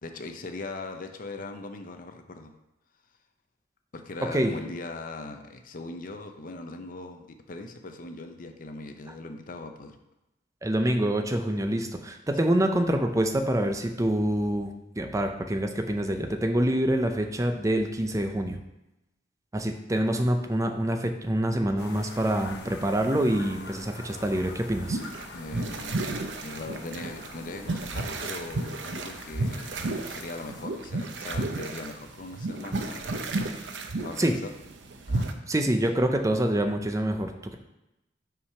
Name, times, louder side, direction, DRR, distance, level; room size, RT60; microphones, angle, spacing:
voice 1, 0.0-2.5 3.9-10.0 25.3-29.8 30.1-33.3 34.0-34.5 35.1-35.4, left 2 dB, 50° left, 6 dB, 0.6 m, -40 dB
voice 2, 10.6-18.6 19.5-25.0 34.2-34.4 35.5-37.6, right 1 dB, 15° right, 5 dB, 0.6 m, -26 dB
sound 1, 21.8-30.7, left 2 dB, 65° left, 1.0 m, -45 dB
sound 2, 24.8-35.3, right 2 dB, 75° right, 0.7 m, -33 dB
5.8 x 4.8 x 5.6 m, 0.95 s
head